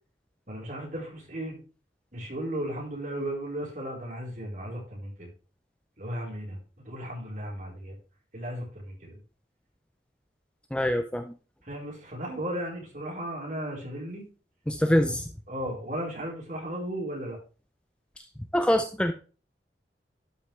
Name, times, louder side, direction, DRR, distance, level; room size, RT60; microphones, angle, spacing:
voice 1, 0.5-1.6 2.1-5.3 6.0-6.6 6.8-8.0 8.3-9.2 11.6-14.2 14.8-15.2 15.5-17.4, right 1 dB, 45° right, -2 dB, 4.1 m, -35 dB
voice 2, 10.7-11.2 14.7-15.2 18.5-19.1, left 1 dB, 5° left, 7 dB, 0.5 m, -24 dB
12.0 x 5.7 x 3.3 m, 0.35 s
head